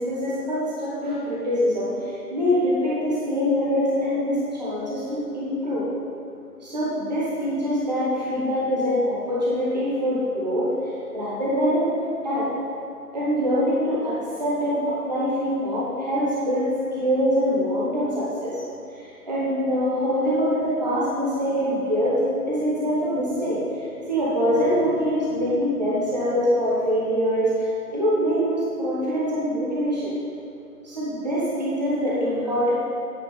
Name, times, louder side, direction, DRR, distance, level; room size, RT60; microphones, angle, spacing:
voice 1, 0.0-5.9 6.6-11.9 12.2-12.5 13.1-18.6 18.9-22.2 22.5-30.1 30.8-32.7, equal, 25° right, -7 dB, 1.1 m, -24 dB
9.1 x 4.1 x 6.4 m, 2.5 s
figure-of-eight pair, 165°, 48 cm